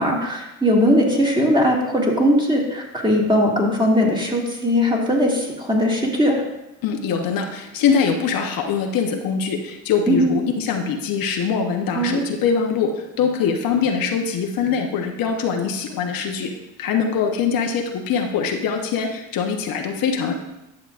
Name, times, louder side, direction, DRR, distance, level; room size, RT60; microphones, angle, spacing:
voice 1, 0.0-6.4 10.1-10.4 11.9-12.2, equal, 15° right, -2 dB, 2.0 m, -19 dB
voice 2, 6.8-16.5 16.8-20.3, left 6 dB, 70° left, 2 dB, 0.9 m, -23 dB
10.5 x 6.5 x 2.5 m, 0.94 s
supercardioid pair, 75°, 36 cm